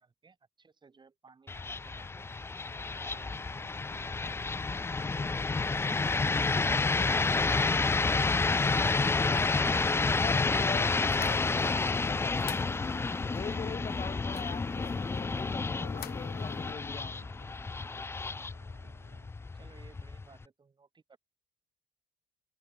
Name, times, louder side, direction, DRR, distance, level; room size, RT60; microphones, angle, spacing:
voice 1, 0.0-2.3 2.8-3.6 4.2-4.7 14.7-14.9 19.5-21.2, right 5 dB, 25° right, 4.8 m, -60 dB
sound 1, 1.5-20.4, left 3 dB, 15° left, 0.5 m, -30 dB
sound 2, 2.9-19.3, right 17 dB, 80° right, 5.1 m, -63 dB
voice 2, 9.1-9.7 10.0-12.6 13.3-17.2, left 6 dB, 35° left, 3.3 m, -42 dB
sound 3, 11.1-16.7, left 14 dB, 65° left, 1.5 m, -47 dB
cardioid pair, 110°, 17 cm